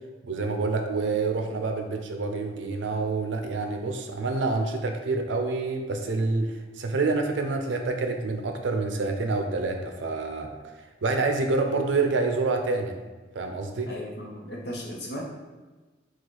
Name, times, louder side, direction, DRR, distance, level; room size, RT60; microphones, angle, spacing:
voice 1, 0.2-10.7 11.0-12.9 13.3-13.9, right 3 dB, 80° right, 5 dB, 0.5 m, -27 dB
voice 2, 13.8-15.2, equal, 60° left, -2 dB, 0.9 m, -36 dB
3.9 x 2.4 x 4.6 m, 1.3 s
head